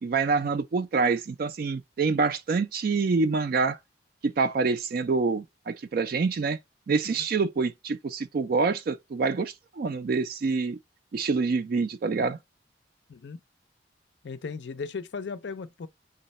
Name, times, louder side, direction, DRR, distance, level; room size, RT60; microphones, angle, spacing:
voice 1, 0.0-3.8 4.2-6.6 6.9-10.8 11.1-12.4, right 4 dB, 50° right, 0.3 m, -26 dB
voice 2, 13.1-13.4 14.2-15.9, left 5 dB, 60° left, 0.4 m, -36 dB
3.8 x 2.1 x 4.0 m
head